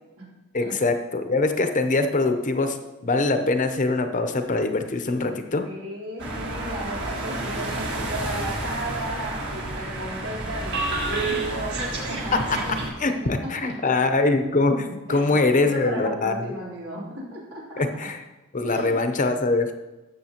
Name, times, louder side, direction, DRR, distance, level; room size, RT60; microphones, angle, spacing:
voice 1, 0.5-2.8 3.0-5.6 12.5-12.6 13.0-16.5 17.8-18.2 18.5-19.7, left 3 dB, 35° left, 7 dB, 0.7 m, -23 dB
voice 2, 5.6-12.6 13.1-13.9 15.1-18.1 18.6-19.2, equal, 75° right, -5 dB, 3.6 m, -35 dB
sound 1, 6.2-12.9, right 2 dB, 55° right, 1.8 m, -29 dB
13.5 x 7.3 x 2.9 m, 1.1 s
head